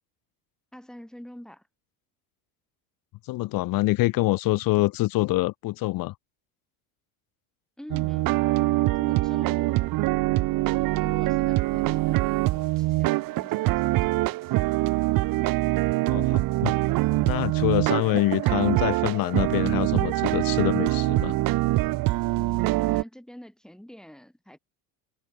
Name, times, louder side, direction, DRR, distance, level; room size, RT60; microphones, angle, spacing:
voice 1, 0.7-1.6 7.8-8.4 8.8-9.8 10.9-14.5 22.3-24.6, equal, ahead, 4.4 m, -46 dB
voice 2, 3.2-6.1 16.0-16.8 17.2-21.4, left 19 dB, 55° left, 1.1 m, -25 dB
sound 1, 7.9-23.0, right 19 dB, 55° right, 1.1 m, -24 dB
supercardioid pair, 110°, 42 cm